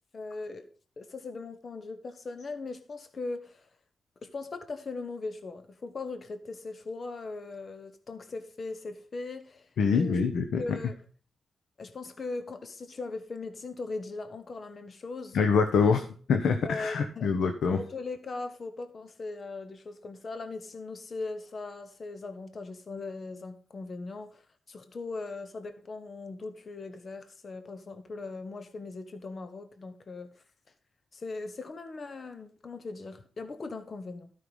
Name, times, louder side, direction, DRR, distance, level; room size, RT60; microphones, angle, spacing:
voice 1, 0.1-0.7 1.0-3.7 4.2-10.2 10.6-10.9 11.8-15.4 16.5-17.3 17.7-24.4 24.7-30.4 31.1-34.3, left 3 dB, 50° left, 1.2 m, -39 dB
voice 2, 9.8-10.6 15.3-16.0 16.3-17.8, left 5 dB, 80° left, 1.2 m, -25 dB
13.0 x 5.8 x 5.5 m
cardioid pair, 75°, 0 cm